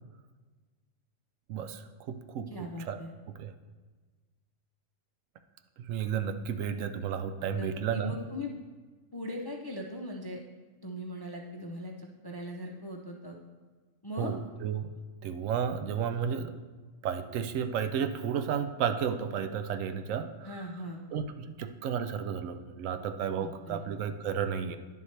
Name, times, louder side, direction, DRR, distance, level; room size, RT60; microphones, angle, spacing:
voice 1, 1.5-2.5 2.8-3.0 3.4-3.5 5.8-8.2 14.2-14.9 15.2-16.5 17.0-20.6 21.1-24.8, right 7 dB, 80° right, 8 dB, 1.0 m, -32 dB
voice 2, 2.5-3.1 7.5-8.6 9.1-10.4 10.8-13.4 14.0-14.4 20.4-21.0 23.4-23.8, left 1 dB, 35° left, 1 dB, 0.4 m, -39 dB
10.5 x 6.9 x 3.3 m, 1.4 s
omnidirectional pair, 1.4 m